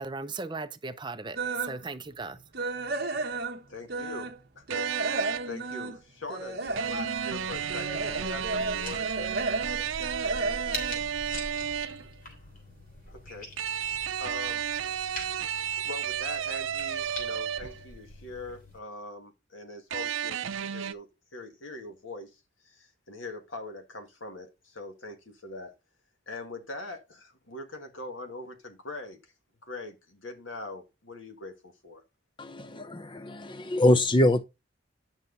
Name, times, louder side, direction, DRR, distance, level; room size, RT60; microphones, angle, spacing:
voice 1, 0.0-2.4, right 3 dB, 25° right, 0.6 m, -37 dB
sound 1, 1.3-1.8 2.2-4.4 4.7-11.9 12.3-12.5 13.0-13.1 13.5-13.6, right 3 dB, 55° right, 1.1 m, -33 dB
voice 2, 3.7-4.9 5.1-9.4 13.1-13.5 14.2-14.7 15.8-25.7 26.3-29.3 29.6-32.0 33.6-33.8, left 2 dB, 75° left, 1.9 m, -42 dB
sound 2, 4.7-5.6 6.8-12.1 13.6-17.9 19.9-20.9, right 9 dB, 85° right, 0.6 m, -32 dB
sound 3, 6.7-18.8, left 1 dB, 45° left, 3.1 m, -44 dB
voice 3, 32.4-34.4, left 1 dB, 25° left, 0.6 m, -24 dB
9.4 x 5.8 x 4.0 m
head